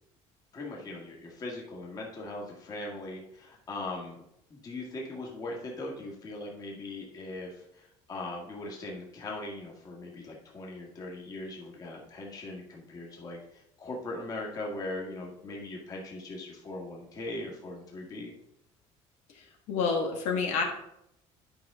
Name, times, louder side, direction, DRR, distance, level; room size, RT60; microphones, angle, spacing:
voice 1, 0.5-4.2 4.5-18.3, left 2 dB, 30° left, -2 dB, 1.7 m, -40 dB
voice 2, 19.3-20.6, left 5 dB, 65° left, 1 dB, 1.6 m, -29 dB
10.5 x 5.3 x 3.7 m, 0.80 s
cardioid pair, 165°, 13 cm